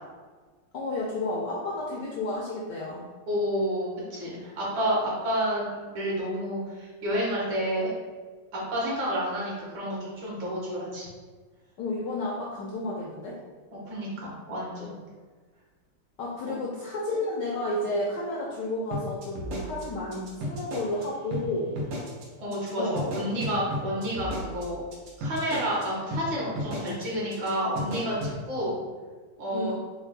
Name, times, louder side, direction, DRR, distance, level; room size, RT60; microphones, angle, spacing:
voice 1, 0.7-3.1 11.8-13.4 16.2-21.7 22.8-23.0 29.5-29.7, left 2 dB, 75° left, -4 dB, 1.0 m, -31 dB
voice 2, 3.3-7.9 8.5-11.1 13.7-14.9 16.4-16.6 22.4-24.8 25.2-28.8 29.4-29.7, equal, 60° right, -6 dB, 1.8 m, -30 dB
sound 1, 18.9-21.0 21.3-21.4 21.8-22.2 22.5-22.7 23.0-25.8 26.1-26.2 26.6-27.0 27.3-27.5 27.8-28.3, equal, 90° right, 1.9 m, -34 dB
4.3 x 2.2 x 4.0 m, 1.4 s
omnidirectional pair, 2.4 m